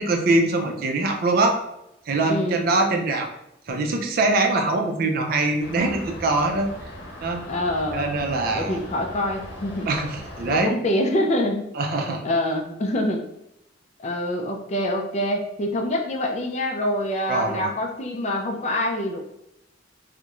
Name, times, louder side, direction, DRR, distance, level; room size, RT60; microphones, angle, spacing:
voice 1, 0.0-1.6 2.1-3.3 3.7-6.7 7.2-7.4 7.9-8.8 9.9-10.7 11.8-12.2 17.3-17.7, right 2 dB, 55° right, 4 dB, 0.4 m, -23 dB
voice 2, 2.3-2.7 7.5-8.1 8.5-9.9 10.5-11.7 12.2-13.3 14.0-19.2, left 1 dB, 40° left, 3 dB, 0.4 m, -25 dB
sound 1, 5.6-10.6, equal, 90° left, 0.7 m, -39 dB
2.3 x 2.0 x 2.9 m, 0.83 s
head